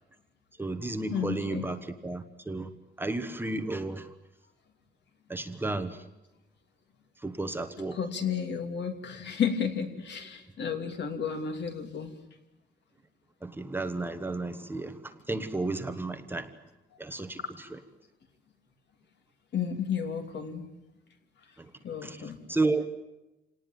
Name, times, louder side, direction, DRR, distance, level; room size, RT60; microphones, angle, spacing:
voice 1, 0.6-2.7 3.0-4.1 5.3-6.0 7.2-8.0 13.4-16.5 17.0-17.4 17.7-17.8 21.6-21.7 22.0-22.9, right 2 dB, 10° right, 8 dB, 1.1 m, -32 dB
voice 2, 1.1-1.7 7.9-12.1 19.5-20.6 21.8-22.4, left 7 dB, 65° left, 6 dB, 2.8 m, -32 dB
27.5 x 18.5 x 9.3 m, 1.0 s
wide cardioid pair, 180°, 19 cm